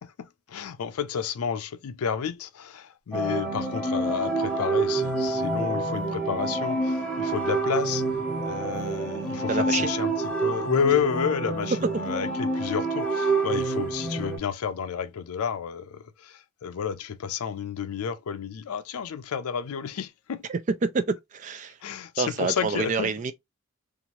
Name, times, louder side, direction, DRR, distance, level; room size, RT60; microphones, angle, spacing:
voice 1, 0.0-8.0 8.4-20.5 21.8-23.1, left 7 dB, 90° left, 0.4 m, -31 dB
sound 1, 3.1-14.4, right 2 dB, 5° left, 0.8 m, -27 dB
voice 2, 9.5-9.9 20.5-21.8 22.2-23.3, right 4 dB, 35° right, 0.3 m, -27 dB
2.8 x 2.5 x 2.9 m
head